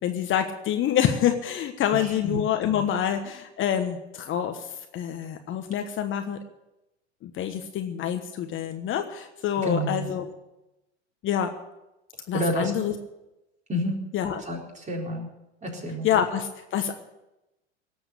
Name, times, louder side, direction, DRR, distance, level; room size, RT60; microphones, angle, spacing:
voice 1, 0.0-6.4 7.2-10.2 11.2-11.5 12.3-12.9 14.1-14.4 16.0-17.0, left 9 dB, 35° left, 6 dB, 1.3 m, -27 dB
voice 2, 1.9-2.4 9.6-10.2 12.3-12.7 13.7-14.0 14.4-15.3 15.6-16.1, equal, 20° right, 0 dB, 4.3 m, -29 dB
18.5 x 7.8 x 8.2 m, 0.94 s
hypercardioid pair, 90°, 34 cm